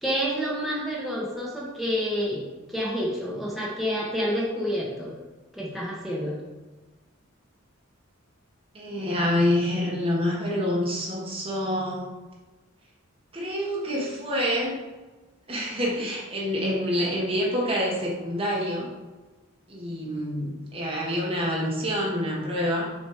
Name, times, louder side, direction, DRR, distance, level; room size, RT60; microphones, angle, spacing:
voice 1, 0.0-2.4 2.7-5.1 5.5-6.4, equal, ahead, -5 dB, 1.3 m, -28 dB
voice 2, 8.7-12.0 13.3-14.8 15.5-18.9 19.7-22.9, equal, 30° right, -3 dB, 1.3 m, -27 dB
6.5 x 4.2 x 4.9 m, 1.2 s
head